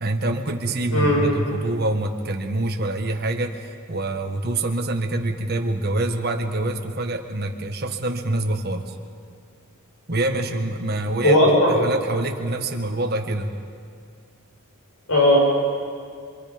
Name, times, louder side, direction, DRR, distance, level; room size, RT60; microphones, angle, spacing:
voice 1, 0.0-8.9 10.1-11.4 11.7-13.5, right 2 dB, 45° right, 3 dB, 1.6 m, -25 dB
voice 2, 0.9-1.2 11.2-11.8 15.1-15.4, left 1 dB, 75° left, -2 dB, 5.7 m, -16 dB
26.5 x 24.5 x 5.3 m, 2.2 s
head